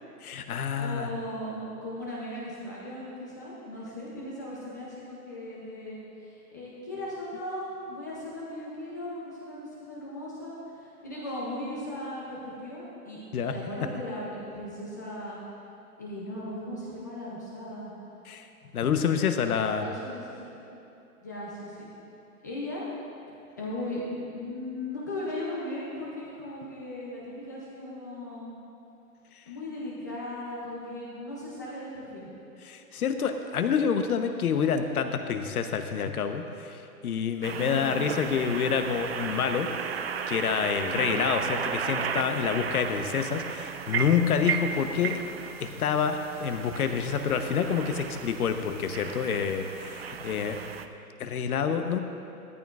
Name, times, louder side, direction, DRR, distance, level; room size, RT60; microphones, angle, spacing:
voice 1, 0.2-1.1 13.3-13.5 18.3-18.5 18.7-19.9 32.6-39.7 40.3-45.2 45.6-50.6 51.2-52.0, left 7 dB, 70° left, 7 dB, 1.0 m, -28 dB
voice 2, 0.7-13.2 13.5-15.4 16.0-17.9 19.7-20.7 21.2-21.9 22.4-22.8 23.6-28.5 29.5-32.3 37.4-38.0 40.9-41.2 44.7-45.2, left 1 dB, 15° left, -6 dB, 0.5 m, -37 dB
sound 1, 37.4-50.9, right 7 dB, 45° right, 0.4 m, -35 dB
13.5 x 13.5 x 2.4 m, 2.9 s
hypercardioid pair, 155°, 46 cm